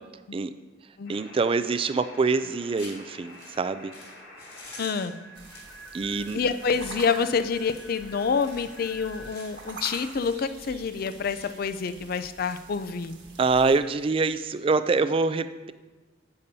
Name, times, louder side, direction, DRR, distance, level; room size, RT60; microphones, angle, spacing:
sound 1, 1.0-9.9, left 1 dB, 75° left, 2.5 m, -48 dB
voice 1, 1.1-3.9 5.9-6.4 13.4-15.7, right 4 dB, 30° right, 12 dB, 0.3 m, -25 dB
sound 2, 2.8-15.1, left 2 dB, 30° left, 2.7 m, -51 dB
voice 2, 4.8-5.2 6.3-13.2, left 5 dB, 50° left, 12 dB, 0.4 m, -27 dB
sound 3, 5.3-13.8, right 3 dB, 65° right, 1.4 m, -46 dB
10.5 x 8.4 x 2.7 m, 1.2 s
head